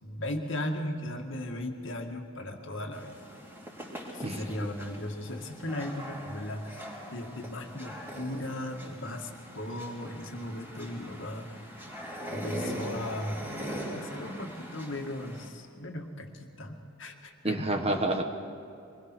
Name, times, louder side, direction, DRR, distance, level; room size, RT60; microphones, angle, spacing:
voice 1, 0.0-3.2 4.1-11.6 12.3-13.4 13.9-17.7, left 1 dB, 60° left, 2 dB, 2.2 m, -37 dB
sound 1, 2.9-15.5, equal, 10° right, 3.7 m, -41 dB
voice 2, 17.4-18.2, right 1 dB, 30° right, 5 dB, 1.5 m, -28 dB
25.5 x 21.0 x 6.3 m, 2.6 s
head